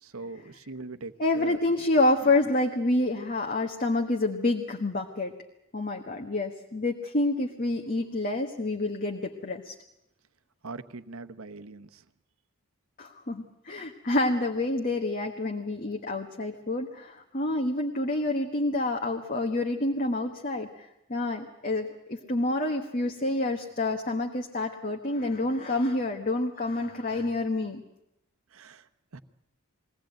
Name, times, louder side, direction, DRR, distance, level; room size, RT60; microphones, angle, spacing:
voice 1, 0.0-1.6 2.2-2.3 10.6-12.0 28.5-29.2, right 3 dB, 75° right, 10 dB, 1.0 m, -42 dB
voice 2, 1.2-5.3 5.7-9.7 13.0-27.8, left 2 dB, 40° left, 2 dB, 1.4 m, -28 dB
23.0 x 17.5 x 9.1 m, 0.85 s
head